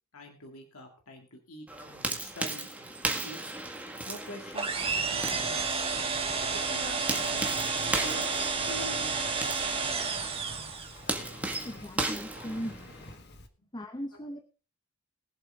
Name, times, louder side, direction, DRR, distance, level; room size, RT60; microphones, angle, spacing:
voice 1, 0.1-3.4 4.1-5.7 6.2-10.3, left 1 dB, 75° left, 2 dB, 2.1 m, -46 dB
sound 1, 1.7-13.1, right 2 dB, 5° right, 1.7 m, -37 dB
sound 2, 4.5-11.1, right 4 dB, 25° right, 1.7 m, -31 dB
Engine, 4.6-13.5, left 1 dB, 50° left, 1.4 m, -48 dB
voice 2, 11.6-13.1 13.7-14.4, equal, 20° left, 6 dB, 0.9 m, -39 dB
21.0 x 7.7 x 3.7 m, 0.34 s
head